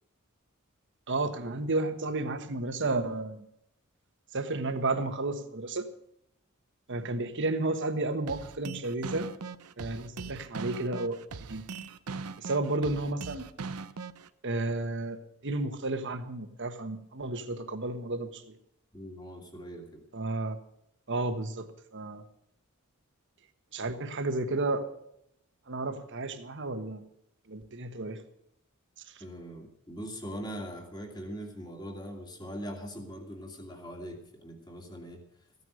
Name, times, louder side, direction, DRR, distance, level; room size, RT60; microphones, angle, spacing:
voice 1, 1.1-3.4 4.3-5.9 6.9-9.3 9.8-11.2 11.5-11.6 12.4-13.5 14.4-18.6 20.1-20.6 21.1-22.2 23.7-24.9 25.7-27.0 27.5-28.2 29.1-29.2, right 2 dB, 55° right, 8 dB, 1.3 m, -32 dB
sound 1, 8.3-14.3, right 4 dB, 80° right, 0.8 m, -40 dB
voice 2, 18.9-20.0 29.2-35.2, equal, 20° left, 3 dB, 2.5 m, -41 dB
15.0 x 9.6 x 6.4 m, 0.76 s
head